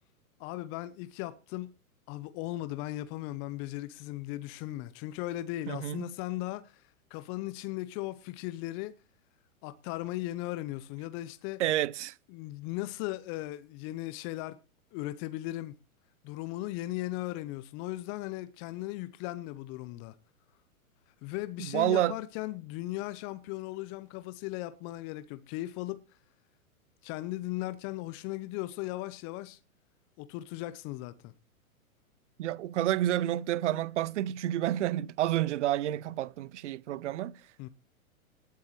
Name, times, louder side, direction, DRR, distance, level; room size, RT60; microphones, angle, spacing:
voice 1, 0.4-1.7 2.1-8.9 9.6-11.6 12.3-14.6 14.9-15.8 16.2-20.2 21.2-26.0 27.0-29.6 30.2-31.3 37.6-37.7, left 17 dB, 30° left, 0.8 m, -37 dB
voice 2, 5.7-6.1 11.6-12.1 21.7-22.2 32.4-37.4, right 13 dB, 55° right, 0.7 m, -29 dB
19.0 x 9.4 x 3.2 m
figure-of-eight pair, 110°, 43 cm